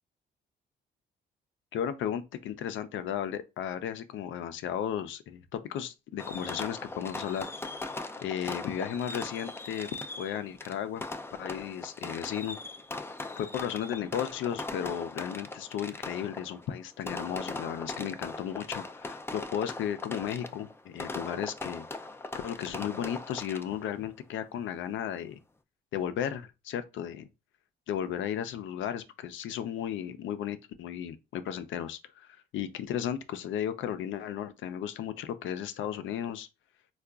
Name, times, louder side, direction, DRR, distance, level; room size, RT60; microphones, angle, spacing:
voice 1, 1.7-7.5 8.2-11.0 11.4-12.6 13.4-21.8 22.4-25.4 25.9-27.3 27.9-32.3 32.5-36.5, left 9 dB, 75° left, 0.5 m, -34 dB
Fireworks, 6.2-24.0, left 2 dB, 10° left, 0.3 m, -40 dB
3.7 x 2.3 x 2.3 m
cardioid pair, 90°, 20 cm